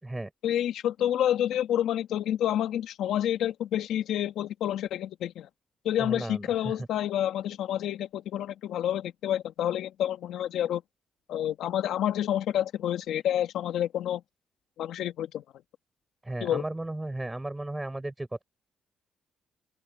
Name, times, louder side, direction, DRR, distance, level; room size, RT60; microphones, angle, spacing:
voice 1, 0.4-5.5 5.9-10.8 11.3-14.2 14.8-15.4 16.4-16.6, left 11 dB, 80° left, 1.8 m, -28 dB
voice 2, 6.0-6.9 16.2-18.4, right 2 dB, 15° right, 6.6 m, -35 dB
cardioid pair, 90°, 0 cm